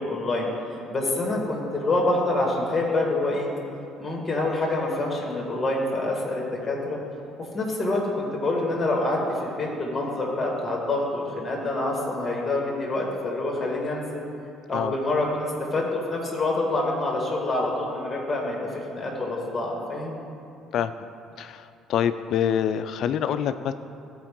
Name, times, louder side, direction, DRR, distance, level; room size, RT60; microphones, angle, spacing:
voice 1, 0.0-3.5 4.0-7.0 7.5-14.2 14.7-20.2, left 2 dB, 20° left, -2 dB, 2.0 m, -26 dB
voice 2, 21.4-23.7, left 9 dB, 65° left, 11 dB, 0.3 m, -26 dB
13.5 x 4.6 x 3.7 m, 2.6 s
cardioid pair, 90°, 0 cm